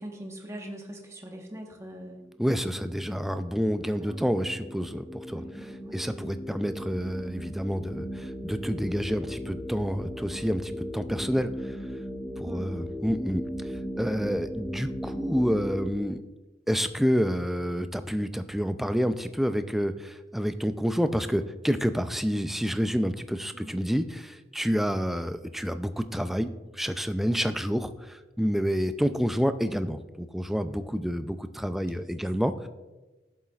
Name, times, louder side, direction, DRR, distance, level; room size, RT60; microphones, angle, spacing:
voice 1, 0.0-2.2 3.9-4.4 5.3-6.0 12.4-12.8 23.5-24.1 27.2-27.4 28.4-28.7, right 1 dB, 15° right, 1 dB, 1.2 m, -43 dB
sound 1, 2.1-15.9, equal, 15° left, 0.9 m, -37 dB
voice 2, 2.4-11.8 12.4-16.2 16.7-32.7, equal, ahead, 10 dB, 0.3 m, -29 dB
14.0 x 7.4 x 2.4 m, 1.2 s
head